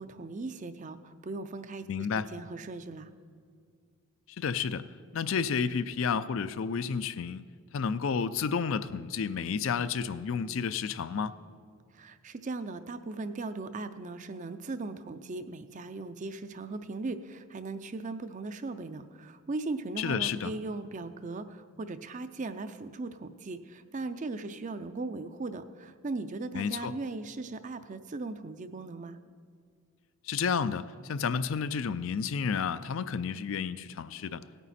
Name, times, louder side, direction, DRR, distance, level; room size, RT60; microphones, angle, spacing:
voice 1, 0.0-3.1 11.9-29.2, right 3 dB, 35° right, 11 dB, 0.4 m, -38 dB
voice 2, 1.9-2.3 4.4-4.9 5.1-7.4 7.7-11.4 20.0-20.5 26.5-26.9 30.2-34.4, left 6 dB, 60° left, 13 dB, 0.4 m, -31 dB
17.0 x 9.1 x 4.2 m, 2.1 s
head